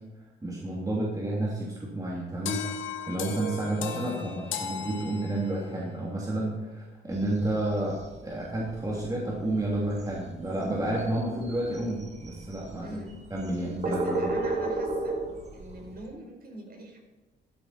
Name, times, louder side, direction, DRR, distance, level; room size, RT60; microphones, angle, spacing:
voice 1, 0.4-2.6 3.1-8.0 8.2-13.0 13.3-14.3, right 1 dB, 15° right, -4 dB, 3.0 m, -30 dB
sound 1, 2.5-5.7, left 6 dB, 75° left, 1.4 m, -36 dB
sound 2, 7.1-16.1, right 2 dB, 35° right, 2.1 m, -35 dB
voice 2, 12.8-13.2 13.8-15.2 15.5-17.0, right 1 dB, 50° right, 2 dB, 4.4 m, -43 dB
13.5 x 12.0 x 4.4 m, 1.2 s
cardioid pair, 90°, 20 cm